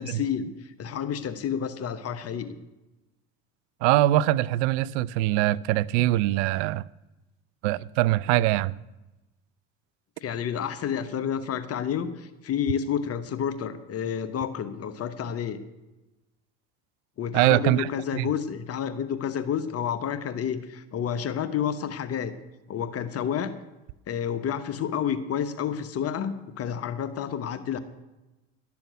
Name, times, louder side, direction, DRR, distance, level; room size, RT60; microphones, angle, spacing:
voice 1, 0.0-2.5 10.2-15.6 17.2-22.3 22.7-23.5 24.1-27.8, left 8 dB, 45° left, 1.1 m, -30 dB
voice 2, 3.8-6.8 7.6-8.7 17.3-17.9 18.2-18.3, right 15 dB, 75° right, 0.5 m, -23 dB
12.5 x 7.0 x 9.2 m
supercardioid pair, 85°, 34 cm